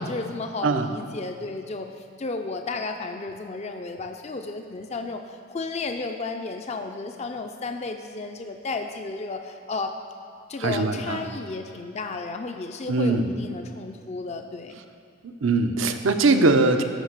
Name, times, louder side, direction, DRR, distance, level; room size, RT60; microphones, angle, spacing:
voice 1, 0.0-9.9 10.5-14.7, left 3 dB, 35° left, 5 dB, 0.4 m, -33 dB
voice 2, 10.6-11.2 12.9-13.3 15.4-16.8, right 3 dB, 75° right, 7 dB, 0.7 m, -21 dB
14.0 x 5.4 x 6.5 m, 2.4 s
head